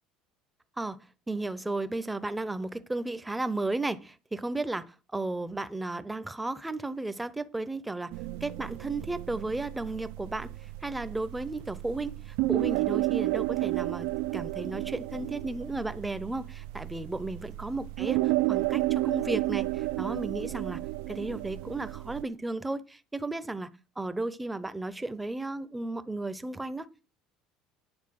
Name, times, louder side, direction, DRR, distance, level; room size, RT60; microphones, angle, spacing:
voice 1, 0.8-8.1 8.4-10.5 10.8-14.1 14.3-20.8 21.1-26.9, right 2 dB, 5° right, 0.5 m, -34 dB
sound 1, 8.1-22.2, right 19 dB, 85° right, 0.4 m, -32 dB
9.6 x 4.3 x 7.6 m
cardioid pair, 150°, 0 cm